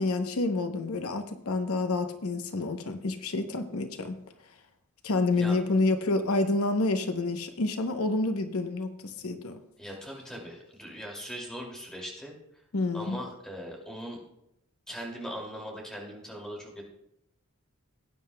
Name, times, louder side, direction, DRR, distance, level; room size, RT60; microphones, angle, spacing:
voice 1, 0.0-4.2 5.0-9.6 12.7-13.2, left 2 dB, 85° left, 7 dB, 0.9 m, -28 dB
voice 2, 9.8-12.3 12.9-14.2 14.9-16.8, equal, 5° left, -2 dB, 2.5 m, -40 dB
18.5 x 9.4 x 2.3 m, 0.83 s
head